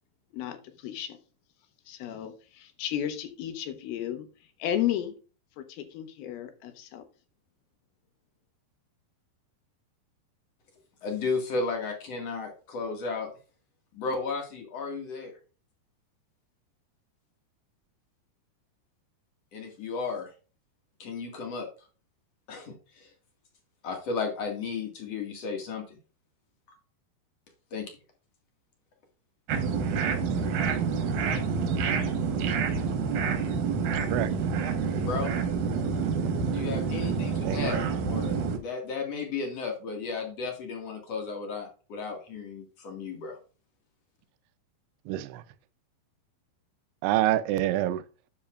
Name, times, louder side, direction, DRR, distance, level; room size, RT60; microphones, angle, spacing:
voice 1, 0.3-1.2 1.9-4.3 4.6-5.1 5.6-7.0, left 11 dB, 75° left, 2.8 m, -33 dB
voice 2, 11.0-13.3 13.9-15.4 19.5-20.3 21.0-21.7 22.5-23.1 23.8-26.0 27.7-28.0 34.9-35.3 36.5-43.4, left 4 dB, 45° left, 2.5 m, -34 dB
sound 1, 29.5-38.6, right 5 dB, 65° right, 2.3 m, -28 dB
voice 3, 37.4-37.9 45.1-45.4 47.0-48.0, right 14 dB, 85° right, 2.7 m, -27 dB
10.0 x 6.9 x 2.4 m
omnidirectional pair, 4.7 m